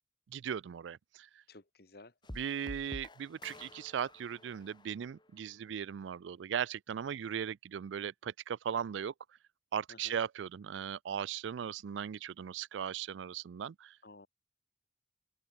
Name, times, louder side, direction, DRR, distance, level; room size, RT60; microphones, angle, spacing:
voice 1, 0.3-1.3 2.3-9.1 9.7-14.0, right 8 dB, 80° right, 0.4 m, -38 dB
voice 2, 1.5-2.1 9.9-10.2 14.0-14.3, left 2 dB, 55° left, 1.6 m, -54 dB
sound 1, 2.2-5.5, left 1 dB, 25° left, 2.0 m, -50 dB
open air
head